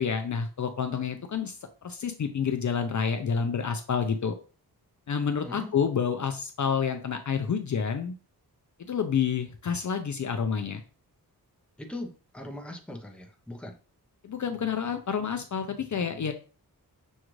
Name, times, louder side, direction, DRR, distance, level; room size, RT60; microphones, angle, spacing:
voice 1, 0.0-1.6 1.8-4.3 5.1-8.1 8.8-10.8 14.2-16.3, left 6 dB, 50° left, 6 dB, 0.5 m, -29 dB
voice 2, 11.8-13.8, left 1 dB, 5° left, 2 dB, 0.7 m, -40 dB
6.3 x 2.4 x 3.1 m, 0.35 s
wide cardioid pair, 120°, 38 cm